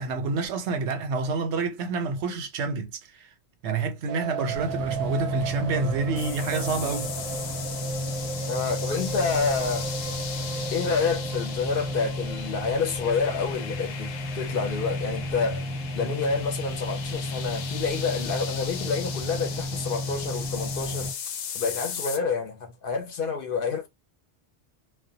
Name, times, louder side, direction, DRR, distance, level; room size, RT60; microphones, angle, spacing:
voice 1, 0.0-3.3 3.6-7.1, right 4 dB, 90° right, 0.9 m, -28 dB
sound 1, 4.1-16.2 16.5-16.6 16.8-16.9 17.2-17.3, right 6 dB, 50° right, 0.6 m, -38 dB
sound 2, 4.5-21.1, left 1 dB, ahead, 0.8 m, -33 dB
sound 3, 6.2-22.2, left 7 dB, 90° left, 0.9 m, -38 dB
voice 2, 8.5-9.9 10.7-15.7 15.9-21.1 21.5-23.9, left 5 dB, 60° left, 0.7 m, -28 dB
2.3 x 2.1 x 2.6 m
omnidirectional pair, 1.1 m